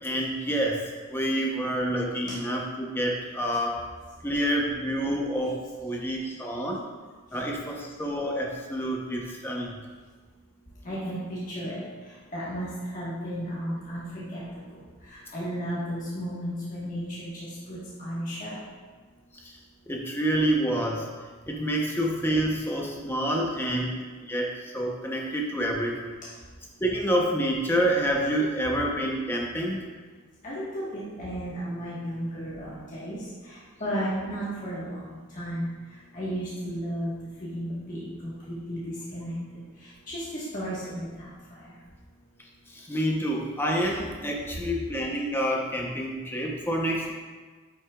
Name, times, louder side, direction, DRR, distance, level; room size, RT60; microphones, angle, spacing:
voice 1, 0.0-0.8 1.1-3.8 4.2-6.8 7.3-9.8 19.3-19.5 19.9-21.1 21.5-26.1 26.8-29.8 42.7-47.1, right 1 dB, 10° left, 0 dB, 0.7 m, -28 dB
voice 2, 10.8-11.8 12.3-12.7 12.9-14.4 15.1-18.6 30.4-33.2 33.8-35.7 36.1-37.1 37.5-38.8 39.1-39.3 40.1-41.3, equal, 35° left, -9 dB, 1.3 m, -33 dB
8.6 x 6.1 x 2.3 m, 1.4 s
head